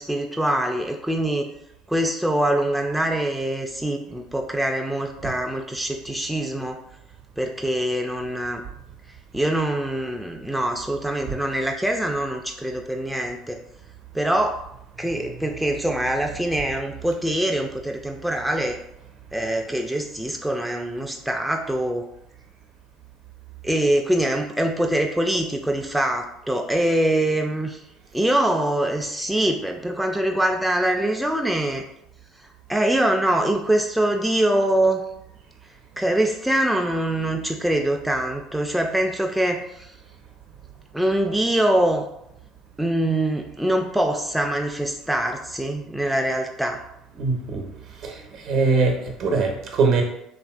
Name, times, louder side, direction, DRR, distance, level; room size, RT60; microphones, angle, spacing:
voice 1, 0.0-1.5 1.9-6.8 7.4-8.6 9.3-13.6 14.1-14.6 15.0-18.8 19.3-22.1 23.6-27.8 28.1-31.9 32.7-35.0 36.0-39.9 40.9-42.1 42.8-46.8, right 1 dB, 5° right, 2 dB, 0.3 m, -24 dB
voice 2, 47.2-47.7 48.0-50.0, right 4 dB, 60° right, 2 dB, 0.7 m, -22 dB
2.8 x 2.5 x 2.3 m, 0.79 s
hypercardioid pair, 75°, 0 cm